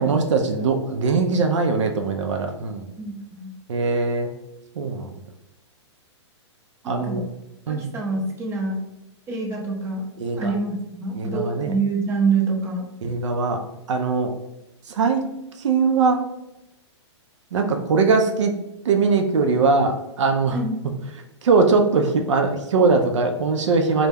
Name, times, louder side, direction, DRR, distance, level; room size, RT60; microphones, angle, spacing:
voice 1, 0.0-2.9 3.7-4.3 4.8-5.1 6.8-7.2 7.7-7.9 10.2-10.5 11.2-11.7 13.0-13.6 13.9-14.3 14.9-15.3 15.6-16.2 17.5-18.5 18.9-20.6 21.4-24.1, right 4 dB, 80° right, 4 dB, 0.4 m, -21 dB
voice 2, 3.0-3.5 6.8-7.2 7.7-8.8 9.3-10.1 10.4-12.9 20.5-20.7, right 4 dB, 15° right, -1 dB, 0.5 m, -26 dB
2.2 x 2.0 x 3.3 m, 0.89 s
hypercardioid pair, 125°, 15 cm